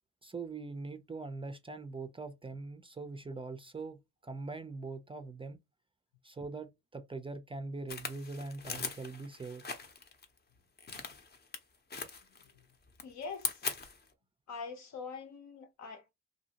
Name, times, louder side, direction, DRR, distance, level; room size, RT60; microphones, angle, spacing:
voice 1, 0.2-4.0 4.2-5.6 6.2-9.6, right 3 dB, 20° right, 0.4 m, -42 dB
sound 1, 7.9-10.2 10.8-11.6 11.9-12.6 12.9-14.1, left 4 dB, 35° left, 0.7 m, -40 dB
voice 2, 13.0-13.6 14.5-16.1, left 5 dB, 65° left, 0.9 m, -44 dB
2.7 x 2.6 x 2.8 m
cardioid pair, 90°, 30 cm